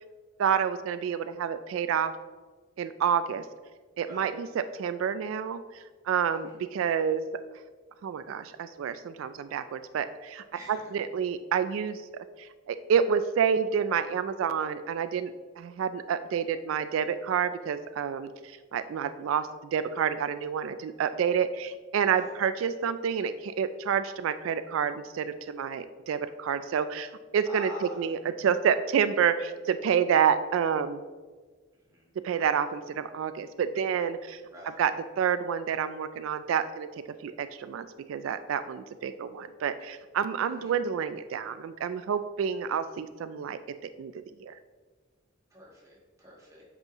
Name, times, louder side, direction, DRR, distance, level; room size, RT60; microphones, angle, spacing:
voice 1, 0.4-2.1 2.8-3.5 4.0-7.2 8.0-31.0 32.2-34.4 34.8-36.9 37.2-44.1 44.4-44.5, right 7 dB, 90° right, 11 dB, 0.3 m, -29 dB
voice 2, 27.5-28.1 31.8-32.1 34.5-34.8 40.6-40.8 45.5-46.6, equal, 15° right, -3 dB, 1.3 m, -45 dB
7.9 x 5.4 x 3.0 m, 1.4 s
head